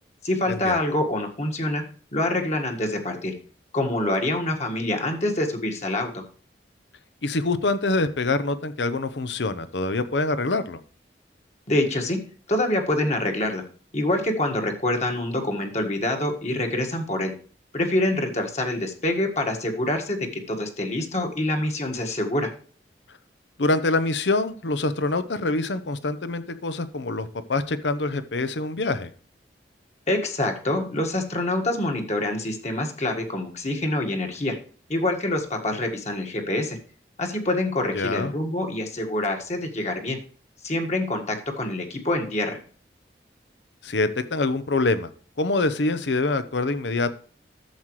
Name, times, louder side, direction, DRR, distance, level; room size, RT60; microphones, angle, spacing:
voice 1, 0.2-1.8 2.1-3.3 3.7-6.2 11.7-12.2 12.5-13.6 13.9-17.3 17.7-22.5 30.1-34.6 34.9-36.8 37.2-40.2 40.6-42.6, left 1 dB, 40° left, 3 dB, 1.7 m, -26 dB
voice 2, 7.2-10.8 23.6-29.1 37.9-38.3 43.8-45.1 45.4-47.2, left 2 dB, 85° left, 13 dB, 0.8 m, -25 dB
11.5 x 7.5 x 3.1 m, 0.44 s
head